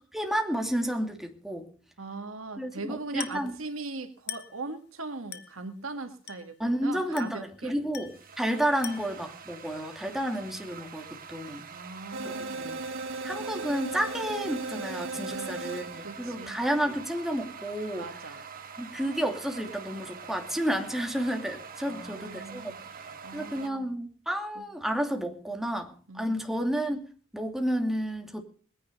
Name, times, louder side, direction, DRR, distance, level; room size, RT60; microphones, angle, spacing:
voice 1, 0.1-1.7 2.6-3.5 6.6-11.7 12.2-12.8 13.2-18.1 18.8-22.7 23.3-27.1 27.3-28.4, equal, ahead, 2.6 m, -31 dB
voice 2, 2.0-7.8 11.7-12.8 15.3-16.6 18.0-18.4 21.9-22.8 23.2-23.9 24.6-24.7 26.1-26.5, right 3 dB, 90° right, 1.8 m, -40 dB
Glass, 3.2-3.5 4.3-4.6 5.3-5.6 6.3-6.6 7.2-7.5 7.9-8.3 8.8-9.2, left 8 dB, 55° left, 1.6 m, -41 dB
sound 1, 7.5-23.7, right 6 dB, 45° right, 1.4 m, -45 dB
sound 2, 12.1-16.3, right 3 dB, 70° right, 1.2 m, -36 dB
21.0 x 10.0 x 5.3 m
head